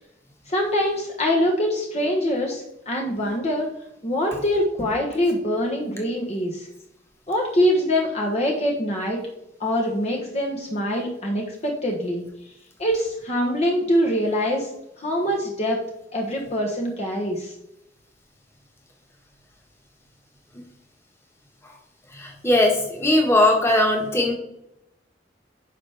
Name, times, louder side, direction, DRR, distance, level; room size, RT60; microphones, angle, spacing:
voice 1, 0.5-3.7 4.0-6.7 7.3-9.2 9.6-12.2 12.8-14.7 15.0-15.8 16.1-17.5, equal, 35° left, -1 dB, 1.2 m, -24 dB
voice 2, 22.1-24.3, left 1 dB, 15° left, 1 dB, 1.6 m, -19 dB
10.0 x 5.7 x 3.5 m, 0.83 s
head